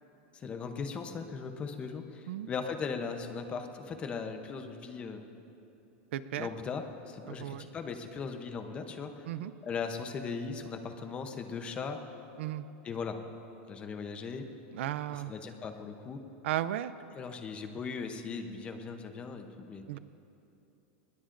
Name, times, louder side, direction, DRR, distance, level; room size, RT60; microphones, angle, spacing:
voice 1, 0.3-5.3 6.4-9.1 9.6-12.0 12.8-13.2 13.7-14.5 15.1-16.2 17.1-19.9, left 5 dB, 15° left, 6 dB, 0.7 m, -38 dB
voice 2, 6.1-6.5 7.3-7.7 9.3-9.5 12.4-12.7 14.7-15.3 16.4-16.9 19.9-20.0, right 13 dB, 70° right, 14 dB, 0.5 m, -35 dB
23.0 x 20.0 x 2.6 m, 2.9 s
supercardioid pair, 175°, 7 cm